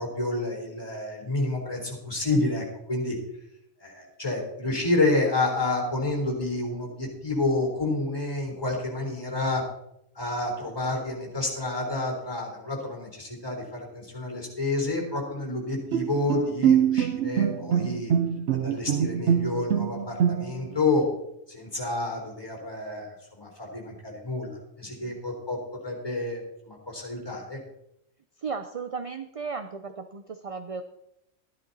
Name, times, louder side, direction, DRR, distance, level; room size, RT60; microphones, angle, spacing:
voice 1, 0.0-3.2 3.8-9.6 10.2-18.1 18.5-21.0 21.5-23.1 23.4-24.5 24.8-26.4 26.7-27.6, left 2 dB, 20° left, 0 dB, 3.8 m, -29 dB
Bowed string instrument, 15.9-20.8, right 9 dB, 70° right, 0.9 m, -24 dB
voice 2, 28.4-30.8, right 5 dB, 35° right, 8 dB, 0.6 m, -35 dB
13.5 x 11.5 x 4.1 m, 0.80 s
omnidirectional pair, 1.3 m